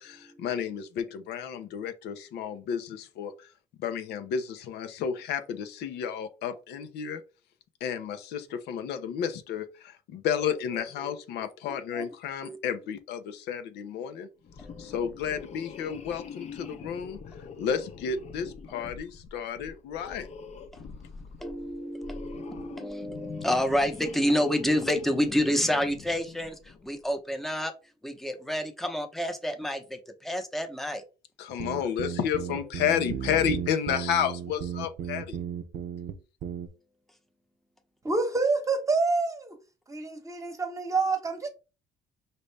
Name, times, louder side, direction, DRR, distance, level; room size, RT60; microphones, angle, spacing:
voice 1, 0.0-3.5 3.8-7.2 7.8-14.3 14.8-17.2 17.6-20.3 31.4-35.4, left 8 dB, 80° left, 0.7 m, -31 dB
voice 2, 11.7-12.0 12.4-12.6 14.6-14.9 18.7-18.9 21.4-27.7 28.0-31.0, equal, ahead, 0.8 m, -29 dB
sound 1, 14.4-26.9, left 6 dB, 40° left, 0.7 m, -44 dB
sound 2, 31.5-36.1 36.4-36.7, right 9 dB, 60° right, 0.6 m, -35 dB
voice 3, 38.0-39.6 39.9-41.5, right 3 dB, 20° right, 1.1 m, -27 dB
5.1 x 2.7 x 3.3 m
cardioid pair, 110°, 17 cm